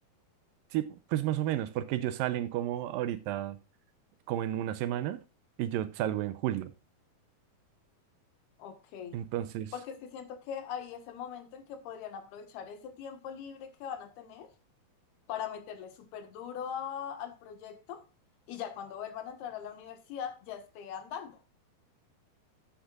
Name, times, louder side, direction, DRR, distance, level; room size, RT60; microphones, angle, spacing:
voice 1, 0.7-3.6 4.3-5.2 5.6-6.7 9.1-9.7, right 12 dB, 80° right, 2.2 m, -32 dB
voice 2, 8.6-9.2 9.7-14.5 15.3-18.0 18.5-21.4, left 8 dB, 85° left, 3.5 m, -41 dB
12.0 x 8.0 x 2.4 m
omnidirectional pair, 4.4 m